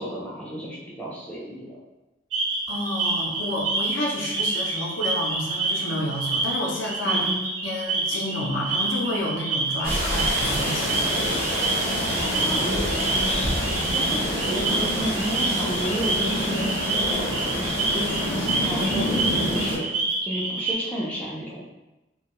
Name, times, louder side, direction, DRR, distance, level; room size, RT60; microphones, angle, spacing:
voice 1, 0.0-1.8 7.0-7.4 12.2-12.8 13.1-16.8 17.1-19.8 20.2-21.6, equal, 5° left, -7 dB, 0.4 m, -32 dB
sound 1, 2.3-20.7, right 3 dB, 85° right, 0.7 m, -28 dB
voice 2, 2.7-7.3 7.6-11.0, left 1 dB, 75° left, -2 dB, 0.5 m, -30 dB
sound 2, 9.8-19.8, equal, 30° right, 0.8 m, -27 dB
2.2 x 2.2 x 2.9 m, 1.0 s
head